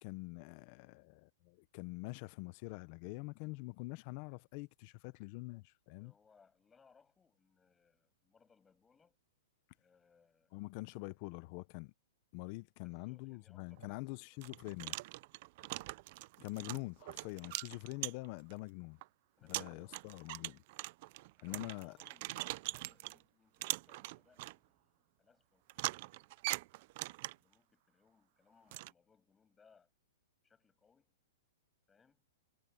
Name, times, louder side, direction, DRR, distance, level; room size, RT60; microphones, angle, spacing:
voice 1, 0.0-6.1 10.5-11.9 12.3-15.0 16.4-19.0 19.4-20.6 21.4-22.0, left 23 dB, 35° left, 0.7 m, -45 dB
voice 2, 5.9-9.2 9.8-10.6 12.8-14.0 14.3-14.4 15.6-15.9 19.4-20.2 21.4-26.4 27.3-29.9 30.4-31.2 31.9-32.3, left 5 dB, 10° left, 6.7 m, -70 dB
sound 1, 13.7-13.9 14.4-18.5 19.0-19.1 19.5-23.2 23.6-24.6 25.7-27.5 28.7-28.9, right 20 dB, 40° right, 0.5 m, -42 dB
hypercardioid pair, 165°, 0 cm